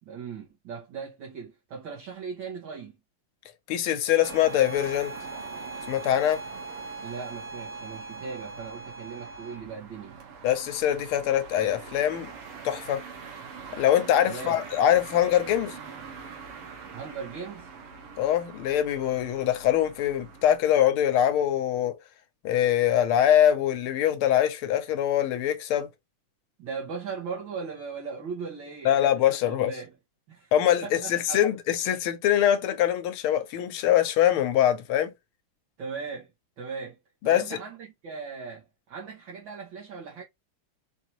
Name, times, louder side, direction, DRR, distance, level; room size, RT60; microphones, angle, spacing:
voice 1, 0.0-3.0 7.0-10.2 14.3-14.6 16.9-17.7 26.6-29.9 30.3-30.5 30.8-31.5 35.8-36.3 36.6-37.0 37.2-40.2, right 5 dB, 65° right, 1.9 m, -38 dB
voice 2, 3.7-5.1 5.9-6.4 10.4-12.3 12.6-13.0 13.7-15.8 18.2-22.0 22.4-25.9 28.8-29.7 30.5-35.1 37.2-37.4, left 11 dB, 85° left, 1.6 m, -23 dB
Bowed string instrument, 4.1-9.7, right 3 dB, 30° right, 1.6 m, -41 dB
sound 1, 4.2-20.6, right 5 dB, 90° right, 2.0 m, -44 dB
4.6 x 2.7 x 2.9 m
omnidirectional pair, 2.4 m